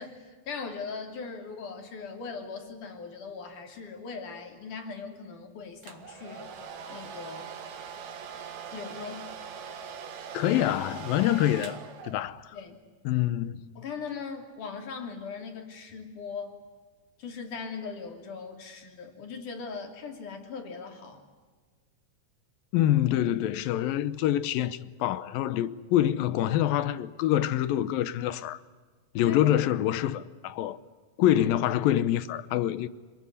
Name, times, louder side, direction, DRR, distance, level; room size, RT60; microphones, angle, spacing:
voice 1, 0.0-6.5 6.9-7.5 8.7-9.4 12.5-12.8 13.8-16.6 17.2-21.2 29.3-29.6, left 5 dB, 65° left, 4.5 m, -40 dB
Domestic sounds home sounds, 5.8-12.5, right 7 dB, 60° right, 2.9 m, -42 dB
voice 2, 10.3-11.8 12.0-12.5 13.1-13.7 22.7-28.6 29.2-30.8 31.2-32.9, left 12 dB, 90° left, 2.7 m, -26 dB
26.5 x 21.0 x 9.9 m
omnidirectional pair, 4.0 m